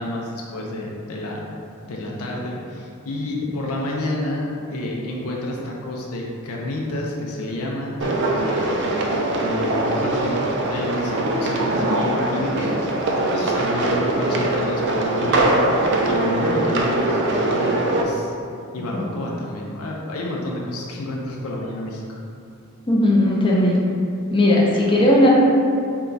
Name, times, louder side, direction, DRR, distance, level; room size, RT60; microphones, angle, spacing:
voice 1, 0.0-1.4 1.8-8.8 9.3-12.7 13.3-18.3 18.7-22.2, left 1 dB, 75° left, -2 dB, 0.5 m, -29 dB
sound 1, 8.0-18.0, right 2 dB, 55° right, 0.4 m, -22 dB
voice 2, 22.9-23.8 24.3-25.3, left 1 dB, 25° left, -3 dB, 0.5 m, -17 dB
4.5 x 2.3 x 3.9 m, 2.5 s
head